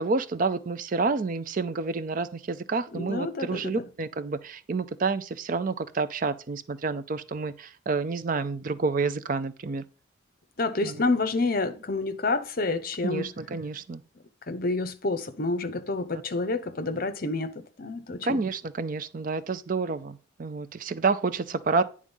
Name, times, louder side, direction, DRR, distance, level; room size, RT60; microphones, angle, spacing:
voice 1, 0.0-9.8 10.8-11.0 13.0-14.0 18.2-21.8, right 4 dB, 40° right, 0.4 m, -29 dB
voice 2, 2.9-3.9 10.6-13.3 14.5-18.4, left 3 dB, 45° left, 0.7 m, -29 dB
9.5 x 3.7 x 5.4 m
head